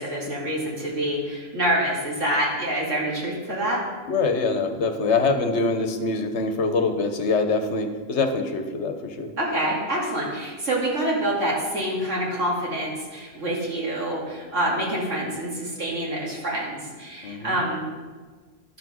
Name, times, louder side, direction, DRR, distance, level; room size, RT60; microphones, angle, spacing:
voice 1, 0.0-3.8 9.4-17.8, right 1 dB, 85° right, -4 dB, 2.8 m, -26 dB
voice 2, 4.1-9.3 17.2-17.6, left 3 dB, 70° left, 6 dB, 1.2 m, -24 dB
12.0 x 5.8 x 6.2 m, 1.4 s
omnidirectional pair, 1.2 m